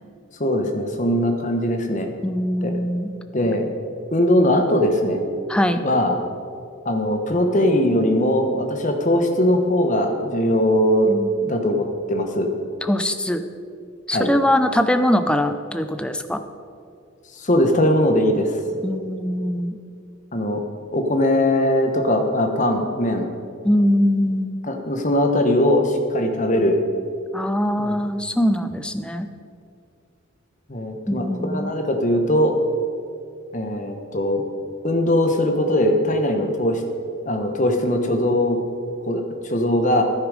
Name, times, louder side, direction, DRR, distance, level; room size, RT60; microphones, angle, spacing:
voice 1, 0.4-2.1 2.6-2.8 3.3-3.7 4.1-5.2 5.8-6.1 6.8-11.1 11.4-12.5 14.1-14.3 17.4-18.6 20.3-20.6 20.9-23.3 24.7-26.8 27.8-28.0 30.7-32.6 33.5-34.4 34.8-36.8 37.3-38.6 39.1-40.0, left 1 dB, 35° left, 4 dB, 1.1 m, -20 dB
voice 2, 2.2-3.1 5.5-5.8 11.1-11.6 12.8-13.4 14.1-16.4 18.8-19.8 23.6-24.6 27.3-29.3 31.1-31.7, left 1 dB, 5° left, 9 dB, 0.4 m, -22 dB
11.5 x 10.0 x 4.9 m, 2.4 s
head